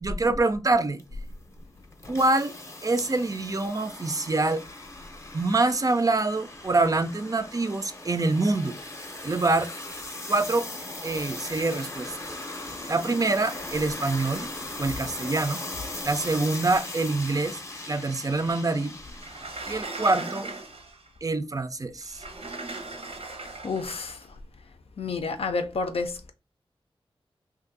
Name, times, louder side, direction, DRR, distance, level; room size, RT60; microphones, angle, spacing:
voice 1, 0.0-1.0 2.1-2.5 2.8-4.6 5.3-8.8 9.2-9.7 10.3-10.7 11.0-12.2 12.9-14.5 14.8-15.6 16.0-17.6 17.9-19.0 19.7-20.5 21.2-22.2, right 2 dB, 35° right, 0.4 m, -25 dB
sound 1, 1.0-19.6, left 2 dB, 30° left, 0.6 m, -39 dB
Sliding door, 19.1-21.1 22.0-24.2, right 2 dB, 85° right, 0.8 m, -38 dB
voice 2, 23.6-24.4 25.0-26.3, left 4 dB, 75° left, 0.5 m, -30 dB
2.6 x 2.6 x 3.8 m
wide cardioid pair, 65°, 10 cm